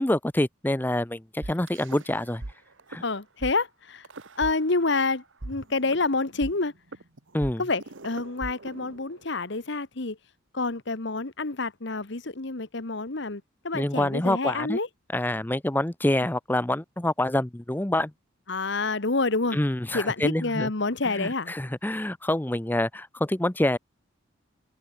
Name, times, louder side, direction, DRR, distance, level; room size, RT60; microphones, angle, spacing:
voice 1, 0.0-2.4 2.9-3.0 7.3-7.6 13.7-14.8 15.1-18.1 19.5-20.7 21.0-23.8, left 1 dB, 10° left, 0.6 m, -26 dB
sound 1, 1.4-2.5 2.8-3.0 3.4-3.5 4.0-5.0 5.4-9.4, right 2 dB, 65° right, 1.4 m, -40 dB
voice 2, 3.0-4.0 4.4-6.7 7.6-10.2 10.5-14.9 18.5-19.6 19.9-21.5, left 3 dB, 60° left, 1.3 m, -28 dB
open air
head